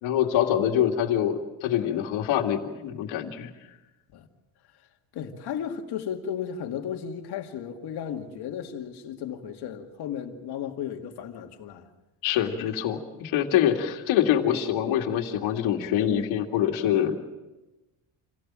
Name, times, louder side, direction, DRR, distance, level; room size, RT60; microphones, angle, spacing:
voice 1, 0.0-3.5 12.2-17.2, left 10 dB, 75° left, 2.4 m, -25 dB
voice 2, 5.1-11.9, left 8 dB, 55° left, 2.3 m, -34 dB
27.0 x 17.0 x 7.5 m
cardioid pair, 150°, 48 cm